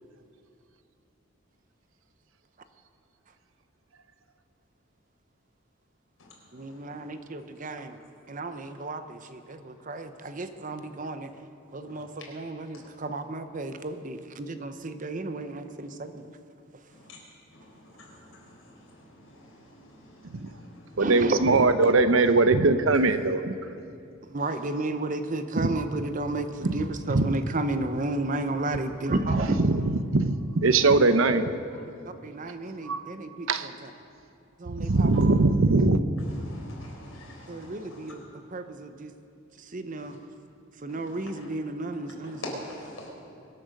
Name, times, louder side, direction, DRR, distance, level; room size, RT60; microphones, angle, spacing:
voice 1, 6.5-8.0 8.3-11.3 11.7-16.3 21.0-21.4 24.3-29.6 30.8-30.9 32.2-33.9 34.6-35.3 37.5-38.2 38.5-39.1 39.6-40.2 40.8-42.6, right 2 dB, 40° right, 9 dB, 0.7 m, -33 dB
voice 2, 21.0-23.5 25.6-25.7 26.6-26.7 27.1-27.3 29.3-29.8 30.1-31.5 32.9-33.0 33.5-33.7 34.8-36.0, right 3 dB, 70° right, 11 dB, 0.7 m, -21 dB
voice 3, 36.4-37.7 42.4-43.1, left 1 dB, 80° left, -3 dB, 4.6 m, -41 dB
23.0 x 8.6 x 6.5 m, 2.5 s
head